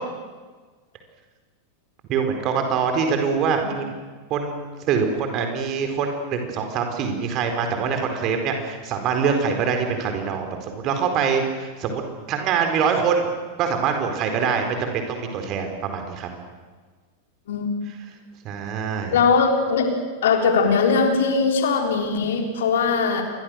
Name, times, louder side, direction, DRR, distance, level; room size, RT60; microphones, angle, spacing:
voice 1, 2.1-3.9 4.3-12.0 12.3-13.3 13.6-16.3 18.4-19.2, right 6 dB, 35° right, 5 dB, 4.4 m, -24 dB
voice 2, 19.1-19.9 20.2-23.2, left 5 dB, 60° left, 3 dB, 3.9 m, -20 dB
27.5 x 23.0 x 6.5 m, 1.4 s
figure-of-eight pair, 90°, 0 cm